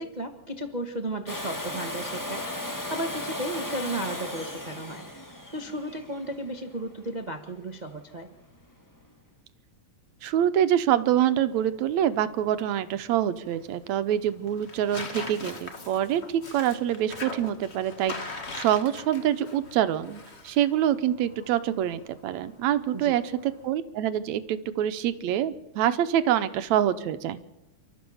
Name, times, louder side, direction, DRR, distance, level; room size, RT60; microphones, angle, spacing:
voice 1, 0.0-5.1 5.5-8.3 22.9-23.2, right 1 dB, 55° right, 4 dB, 0.4 m, -34 dB
Domestic sounds home sounds, 1.3-7.1 9.0-9.1, left 1 dB, 15° left, 0.6 m, -36 dB
voice 2, 10.2-16.2 16.5-27.4, right 11 dB, 75° right, 11 dB, 2.2 m, -26 dB
Tearing, 11.4-23.7, left 3 dB, 30° left, 1.3 m, -42 dB
29.0 x 13.0 x 7.1 m, 0.97 s
omnidirectional pair, 3.4 m